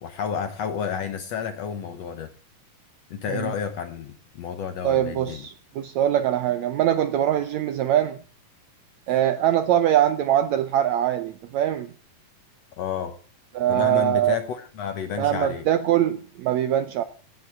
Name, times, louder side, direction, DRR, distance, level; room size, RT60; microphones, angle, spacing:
voice 1, 0.0-2.3 3.1-5.5 12.8-13.2 13.7-15.7, left 7 dB, 65° left, 1.8 m, -31 dB
voice 2, 4.8-8.2 9.1-11.9 13.5-14.4 15.2-17.0, right 11 dB, 75° right, 1.7 m, -22 dB
17.0 x 7.2 x 7.5 m
omnidirectional pair, 4.0 m